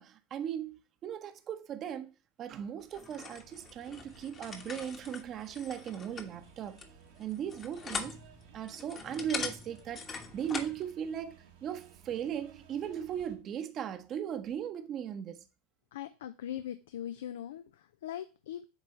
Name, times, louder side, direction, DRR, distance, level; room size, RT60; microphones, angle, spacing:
voice 1, 0.0-2.1 2.4-6.8 7.2-8.2 8.5-11.3 11.6-15.4, right 9 dB, 40° right, 0.8 m, -38 dB
sound 1, 2.9-10.8, left 5 dB, 35° left, 1.2 m, -42 dB
sound 2, 3.4-13.3, right 7 dB, 75° right, 1.5 m, -58 dB
voice 2, 15.9-18.6, left 11 dB, 80° left, 0.4 m, -41 dB
8.0 x 3.3 x 4.3 m
hypercardioid pair, 90°, 0 cm